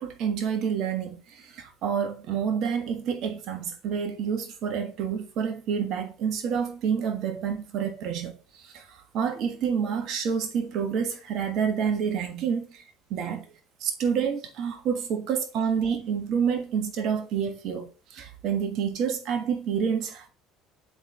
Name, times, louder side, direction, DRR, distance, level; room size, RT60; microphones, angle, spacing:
voice 1, 0.0-8.3 8.6-12.8 13.1-13.4 13.8-20.3, right 7 dB, 60° right, 1.4 m, -28 dB
8.9 x 4.2 x 3.7 m
hypercardioid pair, 70°, 0 cm